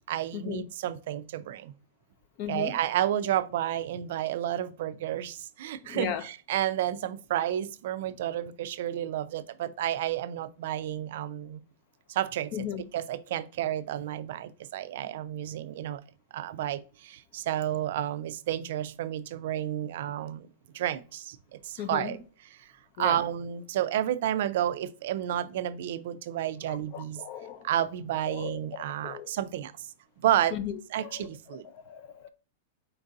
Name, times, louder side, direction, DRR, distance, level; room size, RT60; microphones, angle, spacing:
voice 1, 0.1-1.7 2.5-11.6 12.1-12.7 12.9-16.0 16.3-20.5 20.7-22.2 22.5-22.6 23.0-27.2 27.6-29.7 30.2-30.6 30.9-31.7, right 11 dB, 60° right, 0.3 m, -31 dB
voice 2, 2.4-2.8 5.8-6.2 12.5-12.8 21.8-22.2 23.0-23.2 26.7-27.7 28.3-28.6 29.0-29.3 30.5-30.7 31.0-31.3 31.7-32.3, left 10 dB, 40° left, 0.4 m, -36 dB
4.5 x 2.6 x 3.7 m
supercardioid pair, 160°, 0 cm